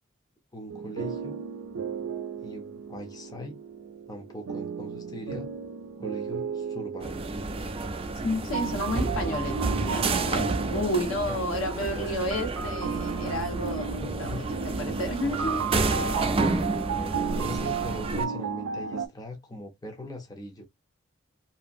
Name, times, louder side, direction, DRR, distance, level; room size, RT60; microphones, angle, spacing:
voice 1, 0.5-1.4 2.4-3.5 4.1-5.5 6.0-7.3 11.2-11.3 11.8-12.1 14.0-14.4 16.9-20.6, left 1 dB, 20° left, 0.6 m, -40 dB
sound 1, 0.7-19.1, right 6 dB, 85° right, 0.4 m, -35 dB
sound 2, 7.0-18.3, right 3 dB, 30° right, 0.4 m, -30 dB
voice 2, 8.2-15.7, left 1 dB, 75° left, 1.2 m, -31 dB
2.7 x 2.5 x 2.5 m
head